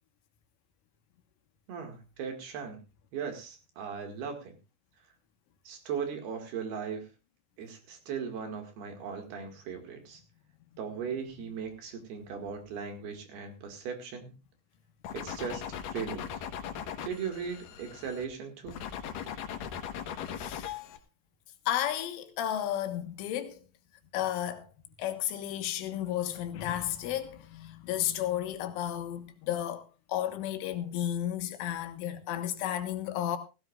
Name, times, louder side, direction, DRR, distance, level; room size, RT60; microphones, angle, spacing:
voice 1, 1.7-2.8 3.1-4.6 5.7-7.1 7.6-10.2 10.8-14.3 15.1-15.6 15.9-16.3 17.0-18.8, right 6 dB, 60° right, 3.6 m, -38 dB
sound 1, 15.0-18.3 18.7-21.0, left 8 dB, 65° left, 2.2 m, -39 dB
voice 2, 20.4-20.8 21.7-23.6 24.1-24.7 25.0-33.4, left 11 dB, 85° left, 3.8 m, -33 dB
17.0 x 16.5 x 2.5 m
omnidirectional pair, 5.5 m